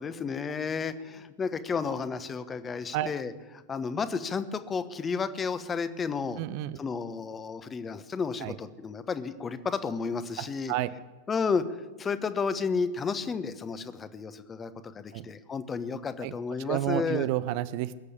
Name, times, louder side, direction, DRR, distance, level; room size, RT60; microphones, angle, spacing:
voice 1, 0.0-6.4 6.8-10.7 11.3-17.3, left 5 dB, 20° left, 12 dB, 1.1 m, -32 dB
voice 2, 6.4-6.8 8.4-8.6 10.4-10.9 15.1-15.3 16.2-16.3 16.7-18.0, right 14 dB, 45° right, 16 dB, 0.6 m, -30 dB
21.0 x 8.3 x 8.4 m, 1.2 s
figure-of-eight pair, 90°, 0 cm